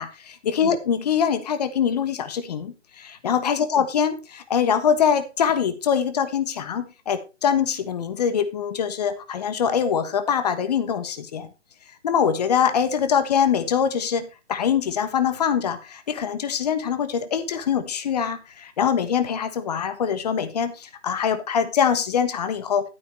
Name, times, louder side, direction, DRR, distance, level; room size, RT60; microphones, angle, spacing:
voice 1, 0.0-11.5 12.0-22.8, left 7 dB, 35° left, 10 dB, 1.3 m, -23 dB
11.5 x 9.2 x 3.3 m, 0.28 s
figure-of-eight pair, 140°, 34 cm